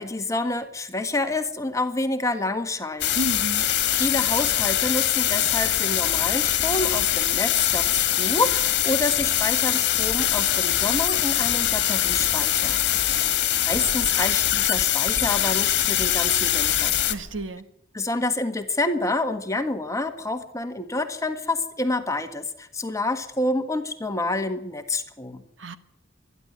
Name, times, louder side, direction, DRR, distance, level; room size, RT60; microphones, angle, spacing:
voice 1, 0.0-3.1 4.0-17.0 17.9-25.4, left 2 dB, 15° left, 7 dB, 1.5 m, -28 dB
sound 1, 3.0-17.2, left 12 dB, 55° left, 1.7 m, -23 dB
voice 2, 3.1-3.7 17.0-17.7 25.6-25.8, right 1 dB, 70° right, 11 dB, 1.4 m, -31 dB
sound 2, 5.4-17.4, left 1 dB, 10° right, 6.3 m, -44 dB
25.5 x 11.0 x 9.7 m, 0.76 s
head